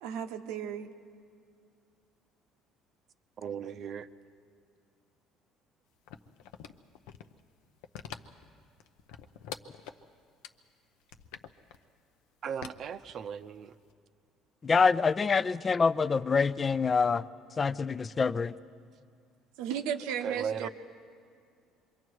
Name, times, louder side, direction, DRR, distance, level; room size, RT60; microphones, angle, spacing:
voice 1, 0.0-0.9 19.6-20.7, right 8 dB, 85° right, 7 dB, 1.0 m, -35 dB
voice 2, 3.4-4.1 12.4-13.8 20.2-20.7, right 7 dB, 50° right, 11 dB, 0.7 m, -37 dB
sound 1, 6.1-7.4 7.8-8.5 8.8-10.0 10.4-10.5 11.0-11.8 12.6-13.6 13.9-14.0, left 9 dB, 85° left, 0.7 m, -44 dB
voice 3, 14.6-17.3 17.6-18.6, left 5 dB, 30° left, 15 dB, 0.5 m, -26 dB
27.0 x 23.5 x 4.7 m, 2.3 s
cardioid pair, 100°, 0 cm